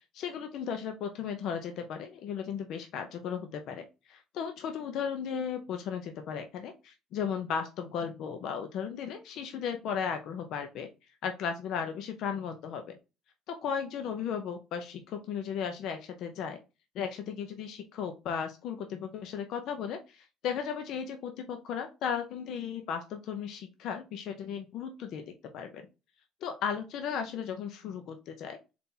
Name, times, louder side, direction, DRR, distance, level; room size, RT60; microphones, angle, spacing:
voice 1, 0.1-10.9 11.2-13.0 13.5-16.6 16.9-25.9 26.4-28.6, left 7 dB, 70° left, 6 dB, 0.7 m, -35 dB
4.2 x 2.9 x 3.7 m, 0.28 s
cardioid pair, 120°, 0 cm